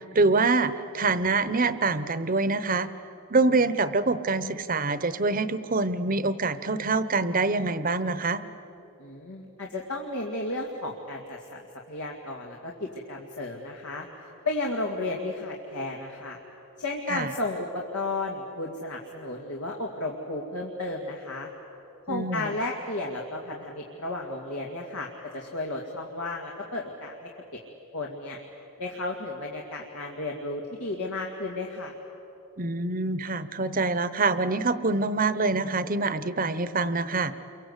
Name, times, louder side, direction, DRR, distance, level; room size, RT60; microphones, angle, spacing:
voice 1, 0.0-2.9 3.3-8.4 17.1-17.3 22.1-22.5 32.6-37.3, right 3 dB, 40° right, 13 dB, 0.9 m, -25 dB
voice 2, 9.0-11.6 11.9-14.1 14.5-16.4 16.8-21.5 22.1-27.3 27.9-28.4 28.8-31.9, left 2 dB, 85° left, -1 dB, 2.2 m, -33 dB
29.0 x 23.5 x 8.2 m, 3.0 s
head